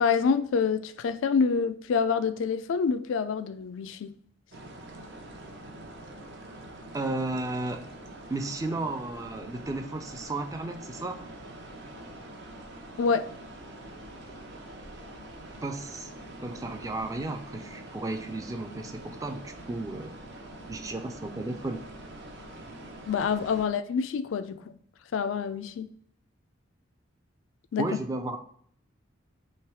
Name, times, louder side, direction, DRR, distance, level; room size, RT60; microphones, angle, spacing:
voice 1, 0.0-4.1 13.0-13.3 23.1-24.8 25.1-25.9 27.7-27.9, left 5 dB, 70° left, 0.3 m, -27 dB
sound 1, 4.5-23.7, right 1 dB, 55° right, 0.6 m, -45 dB
voice 2, 6.9-7.9 8.3-11.2 15.6-16.1 16.4-20.1 20.7-21.9 27.8-28.4, right 2 dB, 15° right, 0.3 m, -33 dB
3.3 x 3.0 x 4.5 m
head